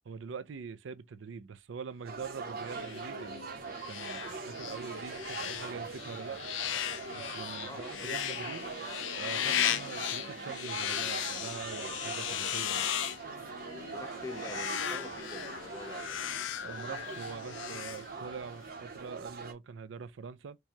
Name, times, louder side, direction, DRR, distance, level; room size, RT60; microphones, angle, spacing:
voice 1, 0.1-3.5 3.8-6.4 7.1-8.7 9.2-12.9 16.6-20.6, right 5 dB, 80° right, 0.4 m, -44 dB
sound 1, 2.1-19.5, right 4 dB, 55° right, 0.8 m, -42 dB
sound 2, 2.6-18.6, left 10 dB, 85° left, 0.4 m, -37 dB
voice 2, 7.6-8.4 13.9-16.2, left 3 dB, 15° left, 0.6 m, -46 dB
4.5 x 2.2 x 2.8 m
head